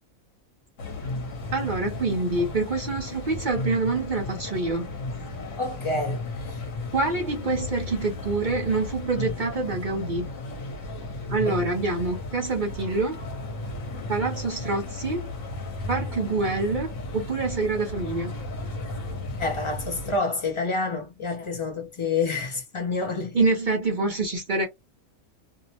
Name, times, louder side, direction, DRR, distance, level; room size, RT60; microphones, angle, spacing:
sound 1, 0.8-20.2, left 2 dB, 70° left, 1.2 m, -34 dB
voice 1, 1.5-4.9 6.9-10.3 11.3-13.2 14.1-15.3 15.9-18.3 23.3-24.7, right 3 dB, 45° right, 0.7 m, -26 dB
voice 2, 5.6-6.6 11.4-11.6 19.4-23.5, left 3 dB, 35° left, 0.5 m, -28 dB
2.7 x 2.0 x 2.8 m
omnidirectional pair, 1.4 m